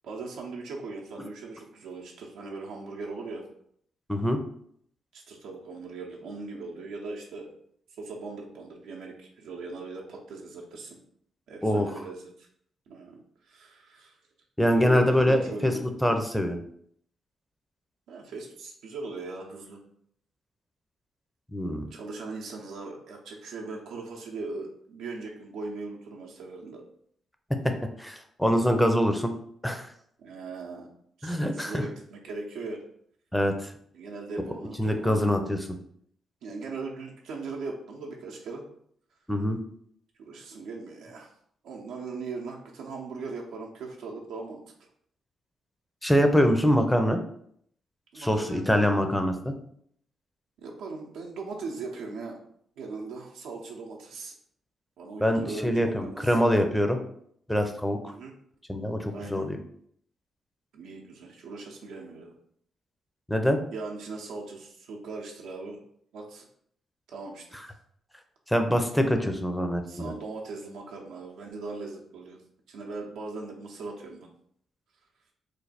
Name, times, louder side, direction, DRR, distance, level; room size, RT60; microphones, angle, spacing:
voice 1, 0.0-3.4 5.1-7.5 8.0-11.0 11.5-12.5 12.9-14.2 14.7-15.8 18.1-19.8 21.7-26.8 30.2-30.9 31.2-32.8 33.9-35.3 36.4-38.7 40.2-41.3 41.6-44.6 48.1-48.9 50.6-52.4 52.8-54.3 55.0-56.4 58.1-58.3 59.1-59.5 60.7-62.3 63.7-65.8 66.1-66.5 67.1-67.6 69.9-72.4 72.7-74.3, right 3 dB, 80° right, -1 dB, 0.6 m, -39 dB
voice 2, 4.1-4.4 11.6-11.9 14.6-15.7 16.0-16.6 21.5-21.9 27.6-29.3 29.6-29.9 31.2-31.8 33.3-33.7 34.8-35.6 39.3-39.6 46.0-47.2 48.2-49.5 55.2-57.0 57.5-58.0 58.7-59.6 63.3-63.6 68.5-70.1, equal, 5° left, 5 dB, 0.6 m, -24 dB
3.2 x 2.2 x 4.0 m, 0.66 s
supercardioid pair, 60°, 0 cm